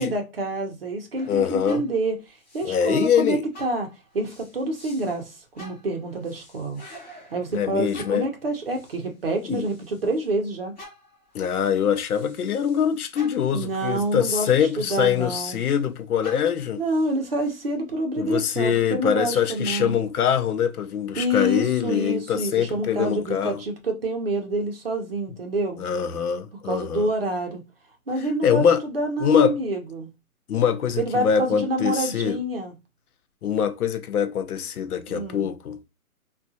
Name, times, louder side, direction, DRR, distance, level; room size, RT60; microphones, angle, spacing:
voice 1, 0.0-2.2 2.5-6.8 7.3-10.7 13.5-15.6 16.8-19.9 21.1-25.8 26.6-27.6 28.1-30.1 31.0-32.7 35.1-35.5, right 1 dB, 40° right, 0.7 m, -27 dB
sound 1, 1.1-3.2 3.5-10.3 10.8-15.9 16.2-17.7, left 1 dB, 30° left, 1.2 m, -49 dB
voice 2, 1.3-1.8 2.6-3.4 7.5-8.3 9.5-9.7 11.3-16.8 18.2-23.6 25.8-27.1 28.4-28.8 29.2-29.6 30.5-32.4 33.4-35.9, left 8 dB, 75° left, 0.6 m, -23 dB
3.5 x 2.3 x 2.6 m
hypercardioid pair, 175°, 44 cm